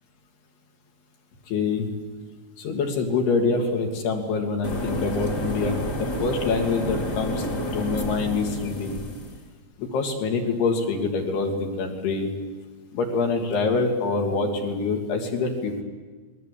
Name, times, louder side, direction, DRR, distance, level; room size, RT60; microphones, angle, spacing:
voice 1, 1.5-1.9 2.6-8.9 9.8-12.3 12.9-15.8, left 4 dB, 65° left, 2 dB, 4.9 m, -25 dB
sound 1, 4.6-9.4, equal, 25° left, 2.6 m, -30 dB
29.0 x 22.0 x 8.7 m, 1.4 s
omnidirectional pair, 5.2 m